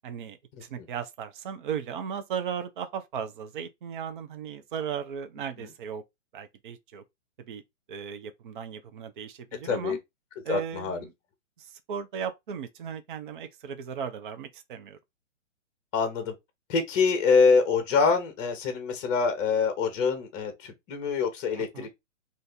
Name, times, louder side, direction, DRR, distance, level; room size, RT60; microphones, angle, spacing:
voice 1, 0.0-6.0 6.3-7.0 7.4-7.6 7.9-10.0 10.4-11.1 11.6-15.0 21.6-21.9, right 7 dB, 40° right, 0.6 m, -36 dB
voice 2, 10.5-11.0 15.9-16.3 16.7-22.0, left 5 dB, 25° left, 0.9 m, -25 dB
2.7 x 2.6 x 3.6 m
hypercardioid pair, 140°, 38 cm